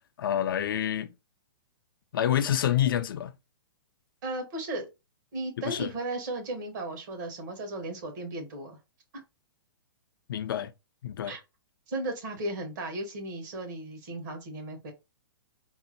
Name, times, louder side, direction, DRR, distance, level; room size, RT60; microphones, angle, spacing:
voice 1, 0.2-1.1 2.1-3.3 5.7-5.9 10.3-10.7 11.0-11.3, left 10 dB, 65° left, 0.4 m, -27 dB
voice 2, 4.2-4.9 5.3-8.8 11.3-11.4 11.9-14.9, right 2 dB, 55° right, 1.5 m, -35 dB
3.7 x 2.0 x 2.9 m
hypercardioid pair, 125°, 12 cm